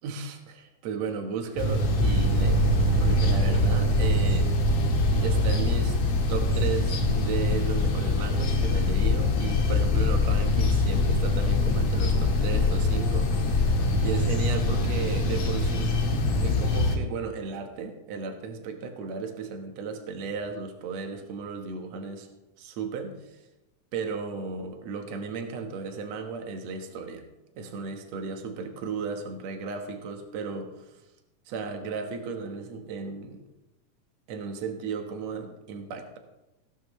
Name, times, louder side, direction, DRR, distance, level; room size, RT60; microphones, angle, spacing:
voice 1, 0.0-4.5 5.2-6.0 6.3-13.7 14.0-16.0 16.4-22.3 22.6-23.4 23.9-27.2 27.6-30.7 31.5-33.4 34.3-36.2, right 5 dB, 60° right, 5 dB, 2.3 m, -35 dB
sound 1, 1.6-17.0, left 2 dB, 55° left, 2.2 m, -23 dB
17.5 x 12.0 x 3.2 m, 0.97 s
omnidirectional pair, 4.0 m